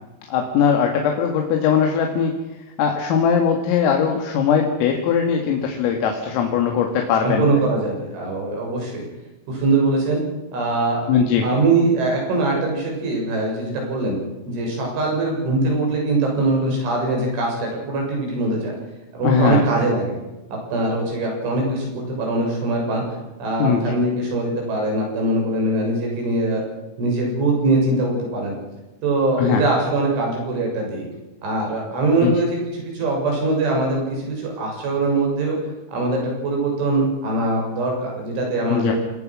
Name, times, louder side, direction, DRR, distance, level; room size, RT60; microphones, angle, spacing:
voice 1, 0.3-2.3 2.8-7.5 11.1-11.4 19.2-19.6 23.6-24.0 29.4-29.6 32.2-32.3 38.7-38.9, left 7 dB, 85° left, 2 dB, 4.6 m, -20 dB
voice 2, 7.2-9.0 9.5-10.2 10.5-11.1 11.4-14.2 14.5-18.7 19.1-20.1 20.7-23.0 23.4-26.6 27.0-28.5 29.0-31.0 31.4-35.6 35.9-39.0, right 2 dB, 65° right, 0 dB, 9.5 m, -22 dB
27.5 x 19.0 x 6.3 m, 1.1 s
omnidirectional pair, 5.9 m